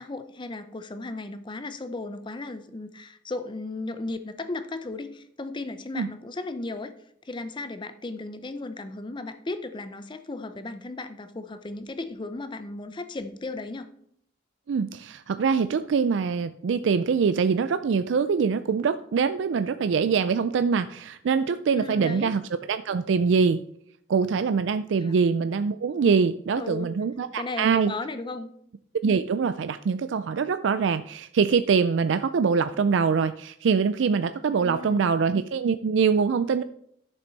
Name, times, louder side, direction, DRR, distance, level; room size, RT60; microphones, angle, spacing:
voice 1, 0.0-6.9 7.2-13.9 21.7-22.3 25.0-25.1 26.6-26.9 27.3-28.5 34.6-35.2, left 2 dB, 25° left, 10 dB, 0.5 m, -35 dB
voice 2, 14.7-22.4 22.7-23.6 24.1-27.9 29.0-36.6, right 5 dB, 75° right, 11 dB, 0.4 m, -24 dB
12.0 x 6.9 x 4.0 m, 0.70 s
head